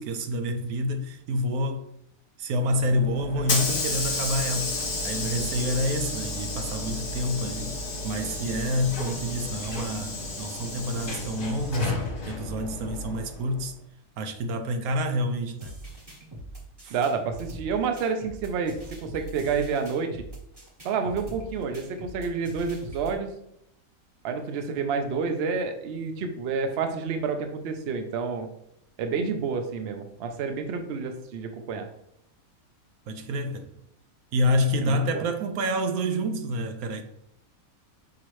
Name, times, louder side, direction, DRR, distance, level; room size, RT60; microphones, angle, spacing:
voice 1, 0.0-1.9 2.4-7.8 8.0-13.7 14.2-15.7 16.8-16.9 33.1-33.7 34.3-37.0, equal, 85° right, 1.1 m, -28 dB
Hiss / Sliding door, 2.8-13.6, left 2 dB, 40° left, 1.0 m, -32 dB
voice 2, 3.5-3.8 16.9-20.3 20.8-23.3 24.2-28.5 29.0-31.9 34.8-35.2, right 5 dB, 60° right, 0.7 m, -29 dB
sound 1, 15.6-23.2, right 1 dB, 20° right, 0.9 m, -43 dB
6.0 x 2.8 x 3.1 m
omnidirectional pair, 1.5 m